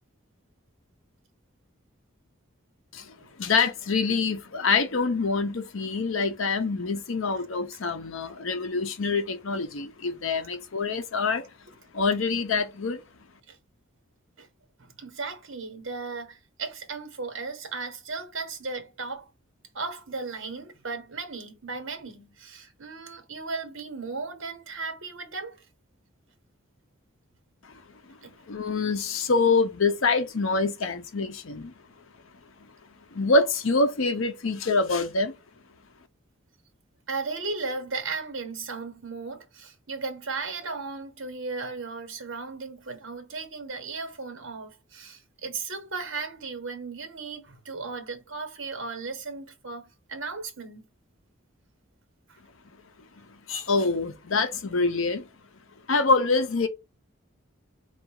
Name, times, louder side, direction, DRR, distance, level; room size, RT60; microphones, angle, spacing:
voice 1, 3.4-11.4 11.9-13.0 28.5-31.7 33.2-35.3 53.5-55.2 55.9-56.7, left 3 dB, 65° left, 0.7 m, -25 dB
voice 2, 14.8-19.3 19.7-25.6 28.2-28.4 37.1-50.9 52.3-52.4, right 4 dB, 65° right, 1.0 m, -36 dB
4.0 x 2.4 x 4.6 m
head